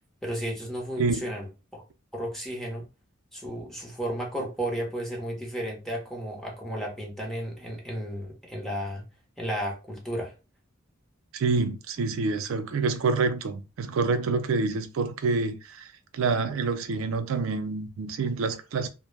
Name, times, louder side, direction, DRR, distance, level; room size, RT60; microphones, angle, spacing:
voice 1, 0.2-1.8 2.1-2.8 3.3-9.0 9.4-10.3, equal, ahead, 0.7 m, -33 dB
voice 2, 11.3-15.9 16.1-18.9, right 4 dB, 75° right, 0.4 m, -27 dB
2.1 x 2.0 x 3.1 m
head